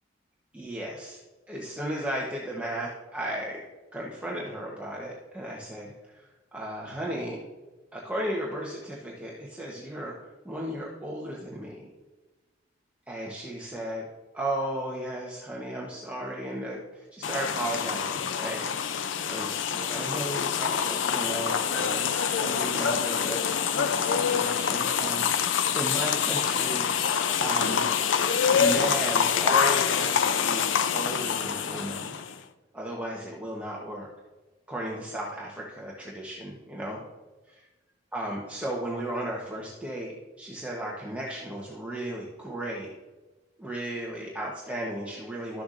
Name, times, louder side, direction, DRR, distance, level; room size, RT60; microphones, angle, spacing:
voice 1, 0.5-1.2 1.5-3.6 3.9-7.4 7.9-11.9 13.1-14.0 14.3-26.9 27.4-27.8 28.5-32.1 32.7-34.1 34.7-37.0 38.1-42.9 43.6-45.6, right 1 dB, 10° right, -4 dB, 1.0 m, -35 dB
sound 1, 17.2-32.4, left 7 dB, 80° left, 0.5 m, -26 dB
12.5 x 6.9 x 2.6 m, 1.2 s
head